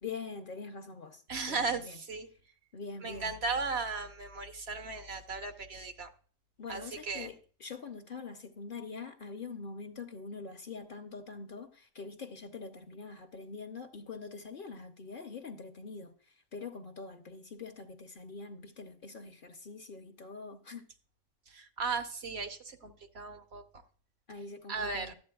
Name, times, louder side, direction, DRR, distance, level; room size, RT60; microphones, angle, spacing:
voice 1, 0.0-1.2 1.5-2.0 2.7-3.4 6.6-20.8 24.3-25.1, left 4 dB, 50° left, 0.8 m, -44 dB
voice 2, 1.3-2.3 3.0-6.1 6.7-7.3 21.5-23.6 24.7-25.1, right 4 dB, 60° right, 1.1 m, -36 dB
12.5 x 8.1 x 2.3 m
omnidirectional pair, 1.3 m